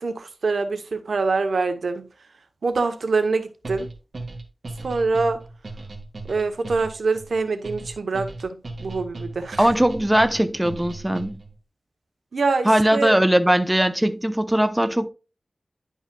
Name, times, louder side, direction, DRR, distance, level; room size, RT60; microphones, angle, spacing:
voice 1, 0.0-2.0 2.6-3.9 4.8-5.4 6.3-9.7 12.3-13.1, right 4 dB, 90° right, 0.9 m, -25 dB
sound 1, 3.6-11.6, right 2 dB, 65° right, 1.7 m, -37 dB
voice 2, 9.6-11.4 12.6-15.1, right 1 dB, 10° right, 0.7 m, -20 dB
10.5 x 5.5 x 2.3 m
wide cardioid pair, 65°, 0 cm